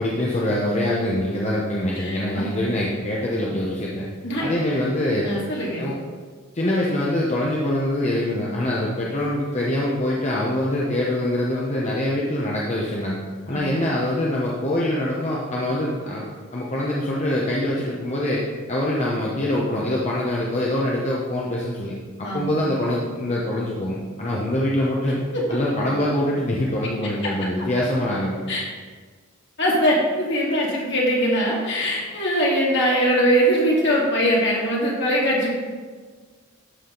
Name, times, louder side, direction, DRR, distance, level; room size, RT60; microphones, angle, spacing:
voice 1, 0.0-4.0 4.4-5.3 5.8-5.9 6.5-13.2 13.5-16.3 16.5-21.9 22.2-25.2 25.5-28.5, left 1 dB, 35° left, -4 dB, 0.9 m, -24 dB
voice 2, 2.0-2.5 4.2-4.5 5.2-5.9 13.5-13.7 22.2-22.6 25.3-25.6 27.2-27.3 28.5-28.6 29.6-35.5, equal, 60° left, -4 dB, 2.3 m, -22 dB
12.5 x 4.9 x 3.9 m, 1.5 s
head